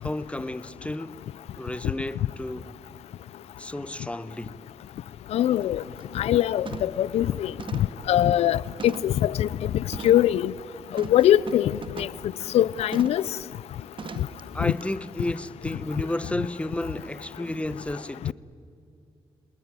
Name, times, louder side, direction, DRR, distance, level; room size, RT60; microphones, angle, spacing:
voice 1, 0.0-1.2 1.6-2.7 3.6-4.6 14.5-18.3, left 1 dB, 10° left, 1.1 m, -32 dB
sound 1, 4.8-4.9 5.4-5.6 6.0-6.3 6.7-7.1 7.6-9.3 9.9-10.3 11.0-12.2 12.9-13.3 14.0-14.4 14.8-14.9, right 5 dB, 55° right, 1.7 m, -40 dB
voice 2, 5.3-5.8 6.1-7.5 8.1-10.5 10.9-12.1 12.5-13.2 14.6-14.7, left 12 dB, 85° left, 0.5 m, -22 dB
29.0 x 19.5 x 9.7 m
supercardioid pair, 55°, 10 cm